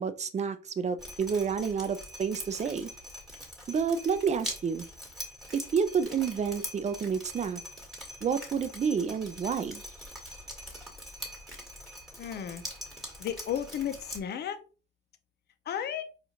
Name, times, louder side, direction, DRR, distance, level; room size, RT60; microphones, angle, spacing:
voice 1, 0.0-2.9 3.7-4.8 5.5-7.6 8.2-9.8, right 6 dB, 35° right, 12 dB, 0.5 m, -29 dB
Drip, 1.0-14.2, equal, ahead, 1.4 m, -43 dB
voice 2, 12.2-12.6 13.2-14.6 15.7-16.1, left 9 dB, 55° left, 9 dB, 0.6 m, -33 dB
4.2 x 2.4 x 2.8 m, 0.35 s
cardioid pair, 90°, 20 cm